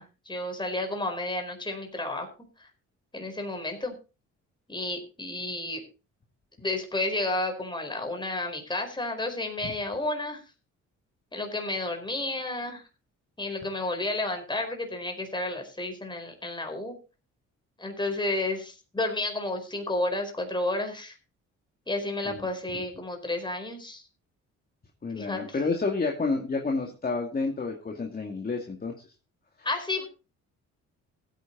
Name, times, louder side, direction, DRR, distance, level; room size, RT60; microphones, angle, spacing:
voice 1, 0.0-2.3 2.6-2.7 3.1-3.9 4.7-5.8 6.6-10.4 11.3-12.8 13.4-16.9 17.8-21.1 21.9-24.0 25.1-25.4 29.6-30.0, left 2 dB, 15° left, 4 dB, 4.6 m, -31 dB
voice 2, 25.0-28.9, left 3 dB, 30° left, 1 dB, 2.4 m, -30 dB
15.5 x 9.3 x 4.0 m, 0.32 s
cardioid pair, 90°, 30 cm